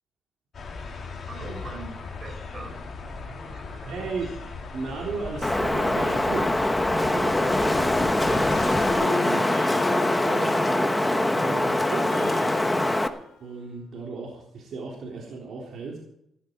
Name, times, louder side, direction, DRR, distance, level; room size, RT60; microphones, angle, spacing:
sound 1, 0.5-8.9, left 4 dB, 35° left, 3.2 m, -38 dB
voice 1, 1.3-2.8 3.2-4.1, right 3 dB, 25° right, 0 dB, 6.2 m, -42 dB
voice 2, 3.9-4.3 4.7-6.6 6.9-8.5 8.9-9.4 9.7-13.0 13.4-16.0, right 4 dB, 50° right, -3 dB, 3.8 m, -36 dB
Wind, 5.4-13.1, left 1 dB, 10° left, 1.0 m, -23 dB
Harp, 8.2-13.5, left 3 dB, 70° left, 2.9 m, -36 dB
16.5 x 14.0 x 4.7 m, 0.75 s
cardioid pair, 170°, 0 cm